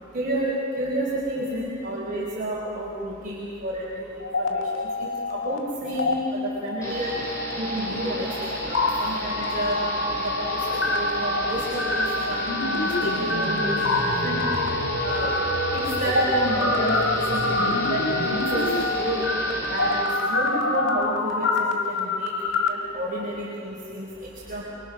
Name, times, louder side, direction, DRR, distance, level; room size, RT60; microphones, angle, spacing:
voice 1, 0.1-7.1 7.6-8.3 8.6-9.8 10.2-12.5 12.8-14.6 15.0-15.3 15.7-17.0 17.3-18.7 19.0-19.3 19.7-21.5 21.8-24.1 24.5-24.6, right 1 dB, 45° right, -5 dB, 4.5 m, -30 dB
sound 1, 4.2-5.6 5.9-6.1 6.7-22.7, left 2 dB, 90° left, 2.0 m, -26 dB
sound 2, 6.8-20.0, equal, 15° left, 7.2 m, -34 dB
28.5 x 23.5 x 6.3 m, 2.7 s
head